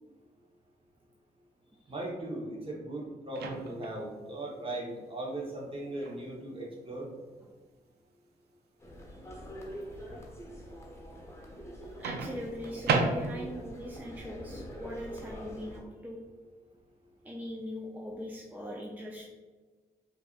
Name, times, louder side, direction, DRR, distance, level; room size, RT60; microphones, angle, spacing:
voice 1, 1.9-7.1, right 1 dB, 35° right, -3 dB, 1.1 m, -38 dB
Microwave oven, 3.3-4.0 6.0-6.2 12.0-13.7, right 4 dB, 80° right, 0.4 m, -32 dB
sound 1, 8.8-15.8, equal, 15° left, 1.0 m, -45 dB
voice 2, 11.7-16.2 17.2-19.3, equal, 10° right, -2 dB, 0.5 m, -41 dB
4.5 x 2.6 x 2.5 m, 1.3 s
cardioid pair, 55°, 17 cm